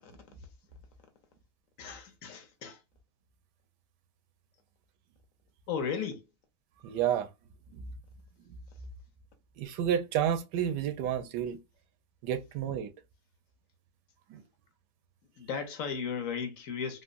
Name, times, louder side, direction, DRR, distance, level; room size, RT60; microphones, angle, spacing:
voice 1, 1.8-2.8 5.7-6.3 15.4-17.0, left 6 dB, 60° left, 1.0 m, -35 dB
voice 2, 6.8-7.3 7.7-7.9 9.6-11.6 12.2-12.9 14.3-14.4, right 9 dB, 85° right, 1.2 m, -30 dB
3.6 x 2.1 x 2.4 m
omnidirectional pair, 1.8 m